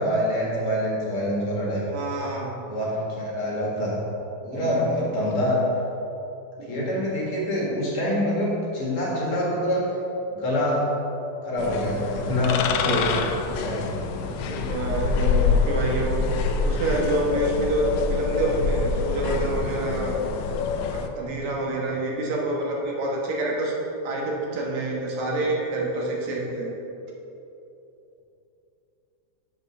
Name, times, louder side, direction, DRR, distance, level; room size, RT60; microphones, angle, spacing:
voice 1, 0.0-1.9 2.7-4.0 4.4-5.6 6.7-9.9 10.3-11.0 11.4-13.1 13.5-14.0, left 1 dB, 55° left, -4 dB, 2.4 m, -25 dB
voice 2, 1.9-2.5 4.5-4.9 6.6-6.9 12.8-12.9 14.4-16.2 16.6-20.1 20.9-23.8 24.0-26.8, right 2 dB, 75° right, -2 dB, 2.5 m, -27 dB
sound 1, 11.6-21.1, left 5 dB, 80° left, 1.8 m, -26 dB
6.9 x 6.5 x 6.2 m, 2.9 s
omnidirectional pair, 3.3 m